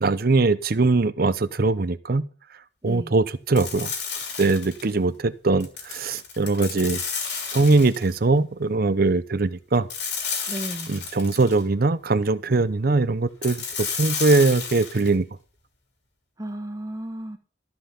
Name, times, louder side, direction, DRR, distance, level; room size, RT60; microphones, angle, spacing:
voice 1, 0.0-2.2 2.8-3.9 4.4-7.0 7.5-9.9 10.9-15.3, right 3 dB, 55° right, 15 dB, 0.7 m, -21 dB
voice 2, 2.8-3.1 10.5-10.9 16.4-17.4, right 1 dB, 20° right, 7 dB, 1.2 m, -33 dB
sound 1, 3.6-4.9 5.6-8.1 9.9-11.6 13.4-15.1, left 6 dB, 65° left, 3.1 m, -32 dB
13.5 x 5.9 x 6.9 m, 0.39 s
head